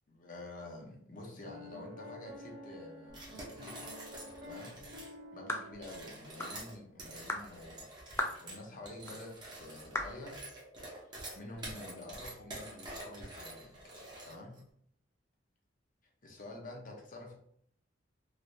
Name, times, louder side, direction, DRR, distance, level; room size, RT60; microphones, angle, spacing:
voice 1, 0.1-3.8 4.4-4.8 5.3-8.1 8.4-10.4 11.0-11.1 11.3-13.9 14.3-14.6 16.2-17.3, left 2 dB, 45° left, 0 dB, 0.8 m, -48 dB
Piano, 1.5-6.8, left 1 dB, 55° right, 0.6 m, -50 dB
sound 1, 3.1-5.1 5.7-14.6, right 1 dB, 25° right, 0.9 m, -47 dB
sound 2, 5.5-5.7 6.4-6.6 7.3-7.5 8.2-8.4 9.1-9.2 9.9-10.2, left 2 dB, 15° left, 0.3 m, -35 dB
3.2 x 2.6 x 2.7 m, 0.70 s
head